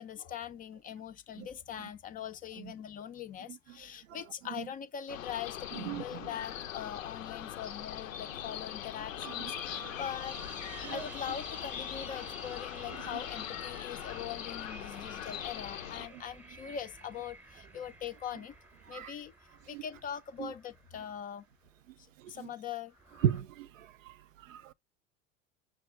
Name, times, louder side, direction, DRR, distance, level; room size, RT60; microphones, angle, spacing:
voice 1, 0.0-10.4 10.9-18.6 18.9-19.3 19.7-21.5 22.0-22.9, left 9 dB, 25° left, 0.4 m, -42 dB
sound 1, 5.1-16.1, left 11 dB, 85° left, 0.6 m, -41 dB
voice 2, 5.7-6.3 9.4-9.5 9.8-9.9 10.8-11.0 13.1-13.2 16.1-16.2 18.9-19.1 19.7-19.8 20.4-20.5 22.2-22.5 23.2-24.7, right 10 dB, 80° right, 0.5 m, -37 dB
sound 2, 5.9-8.2 9.7-21.4 22.9-23.4, right 2 dB, 5° right, 0.8 m, -52 dB
sound 3, 9.2-14.4, right 9 dB, 35° right, 0.6 m, -56 dB
6.3 x 2.1 x 3.6 m
hypercardioid pair, 85°, 38 cm